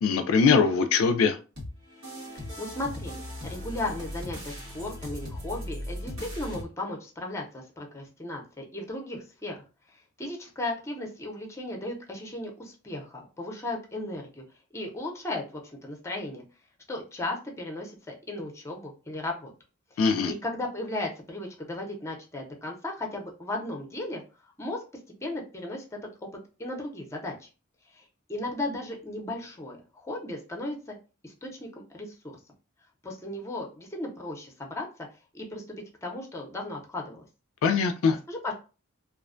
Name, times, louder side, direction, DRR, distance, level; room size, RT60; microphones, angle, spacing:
voice 1, 0.0-1.4 20.0-20.3 37.6-38.2, left 5 dB, 70° left, 0.3 m, -22 dB
sound 1, 1.6-6.6, left 1 dB, 80° right, 1.3 m, -38 dB
voice 2, 2.3-9.6 9.9-14.4 14.7-16.4 16.9-19.5 19.9-24.2 24.6-24.8 25.2-25.8 26.6-27.5 27.9-28.0 28.3-31.0 31.2-32.3 33.0-34.9 35.3-35.6 36.0-37.2 38.3-38.5, left 2 dB, 15° left, 0.6 m, -36 dB
2.4 x 2.2 x 2.4 m
head